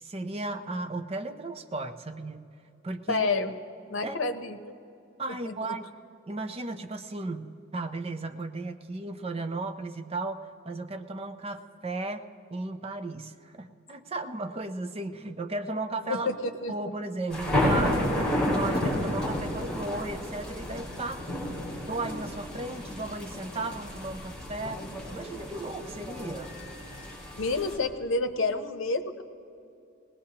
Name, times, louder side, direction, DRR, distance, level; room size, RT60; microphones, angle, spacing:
voice 1, 0.0-2.5 2.8-3.3 4.0-4.2 5.2-5.8 6.3-12.2 12.5-16.3 16.7-21.2 21.9-24.8 25.1-26.5, right 2 dB, 30° right, 7 dB, 0.6 m, -35 dB
voice 2, 3.1-3.5 3.9-4.6 5.4-5.5 16.1-16.9 27.4-29.2, left 3 dB, 70° left, 8 dB, 0.8 m, -29 dB
sound 1, 17.3-27.8, left 1 dB, 5° left, 3.7 m, -31 dB
20.0 x 19.0 x 2.9 m, 2.7 s
head